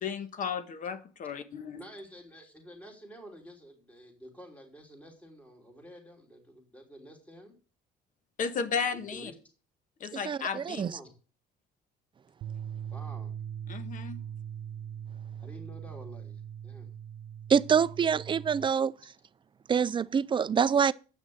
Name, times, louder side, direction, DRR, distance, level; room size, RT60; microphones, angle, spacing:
voice 1, 0.0-1.8 8.4-9.3 10.0-10.9 13.7-14.2, left 6 dB, 50° left, 1.3 m, -34 dB
voice 2, 1.7-7.6 8.9-9.4 10.7-11.1 12.9-13.4 15.4-16.9, equal, 10° left, 3.3 m, -50 dB
voice 3, 10.3-10.9 17.5-18.9 19.7-20.9, right 7 dB, 30° right, 0.5 m, -25 dB
sound 1, 12.4-18.7, right 9 dB, 70° right, 0.6 m, -40 dB
8.6 x 6.1 x 7.9 m
cardioid pair, 110°, 17 cm